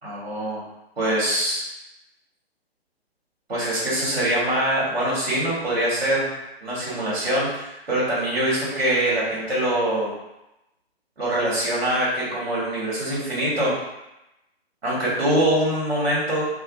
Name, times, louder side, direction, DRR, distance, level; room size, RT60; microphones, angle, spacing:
voice 1, 0.0-0.6 1.0-1.6 3.5-6.3 6.6-10.1 11.2-13.7 14.8-16.4, right 1 dB, 60° right, -7 dB, 1.3 m, -23 dB
2.6 x 2.3 x 3.5 m, 0.93 s
figure-of-eight pair, 130°, 31 cm